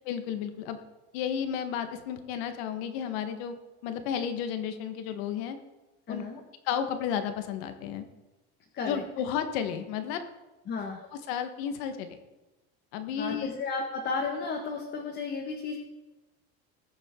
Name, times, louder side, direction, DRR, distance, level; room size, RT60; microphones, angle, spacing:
voice 1, 0.1-0.8 1.1-3.6 3.8-5.6 6.1-6.2 6.6-8.0 8.9-10.2 11.3-12.2 12.9-13.5, left 8 dB, 80° left, 8 dB, 1.5 m, -32 dB
voice 2, 6.1-6.4 8.7-9.0 10.7-11.0 13.2-15.8, left 4 dB, 35° left, 0 dB, 1.7 m, -33 dB
20.0 x 7.4 x 3.8 m, 1.1 s
cardioid pair, 145°, 31 cm